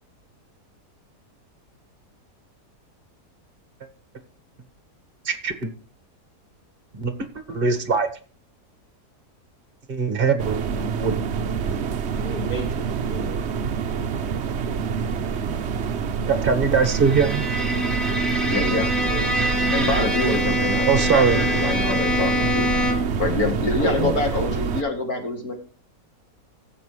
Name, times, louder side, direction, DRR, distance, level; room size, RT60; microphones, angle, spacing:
voice 1, 5.2-5.7 6.9-7.1 7.5-8.1 9.9-10.6 10.9-11.2 16.3-17.4 20.9-21.4, right 5 dB, 35° right, 1.7 m, -21 dB
sound 1, 10.4-24.8, right 6 dB, 55° right, 0.9 m, -26 dB
voice 2, 12.1-13.4 19.0-19.5 23.8-24.2, right 2 dB, 90° left, 5.4 m, -31 dB
Bowed string instrument, 16.8-23.2, equal, ahead, 3.3 m, -25 dB
voice 3, 18.4-18.9 19.7-22.7 23.2-25.5, left 3 dB, 65° left, 3.2 m, -26 dB
17.5 x 7.3 x 3.2 m
omnidirectional pair, 1.7 m